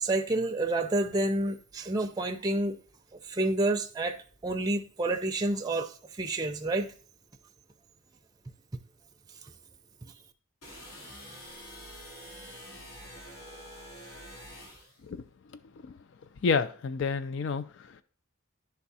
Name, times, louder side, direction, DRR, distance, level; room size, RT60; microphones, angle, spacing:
voice 1, 0.0-2.8 3.3-4.2 4.4-6.9 10.0-10.1, right 2 dB, 20° right, 0.5 m, -29 dB
sound 1, 10.6-15.0, equal, 85° left, 2.8 m, -46 dB
voice 2, 16.4-18.0, left 5 dB, 60° left, 0.4 m, -30 dB
10.5 x 3.5 x 4.1 m
head